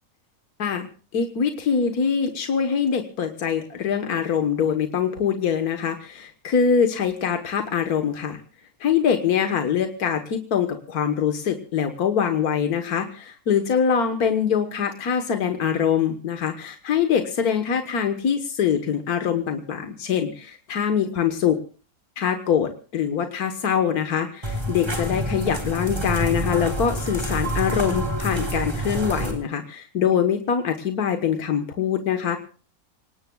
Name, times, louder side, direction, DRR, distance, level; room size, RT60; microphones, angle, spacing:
voice 1, 1.1-8.4 8.8-21.6 22.2-32.4, left 7 dB, 85° left, 6 dB, 1.8 m, -23 dB
sound 1, 24.4-29.3, right 1 dB, 15° right, 3.5 m, -27 dB
27.0 x 18.5 x 2.3 m, 0.38 s
omnidirectional pair, 1.6 m